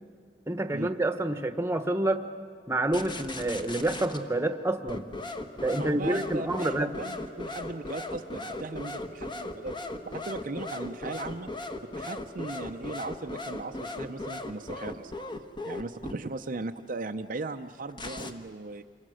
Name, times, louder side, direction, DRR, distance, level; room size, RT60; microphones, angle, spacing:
voice 1, 0.5-2.2 2.7-5.1 5.6-6.9, right 1 dB, 15° right, 9 dB, 1.1 m, -28 dB
sound 1, 2.9-4.2 4.9-16.1 17.9-18.3, left 2 dB, 25° left, 1.3 m, -37 dB
voice 2, 5.8-9.7 10.0-11.5 11.8-15.1 15.6-18.8, right 3 dB, 50° right, 6 dB, 0.6 m, -38 dB
sound 2, 6.7-15.1, right 1 dB, 45° left, 3.6 m, -52 dB
28.0 x 24.5 x 6.4 m, 2.2 s
head